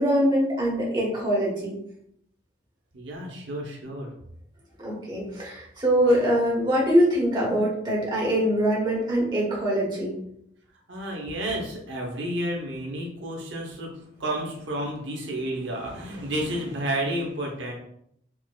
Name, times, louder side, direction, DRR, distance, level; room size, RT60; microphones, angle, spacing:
voice 1, 0.0-1.8 4.8-10.1, equal, 25° right, -5 dB, 1.0 m, -23 dB
voice 2, 2.9-4.1 10.9-13.9 14.2-17.7, right 1 dB, 80° right, -1 dB, 0.7 m, -31 dB
4.6 x 2.2 x 2.2 m, 0.73 s
head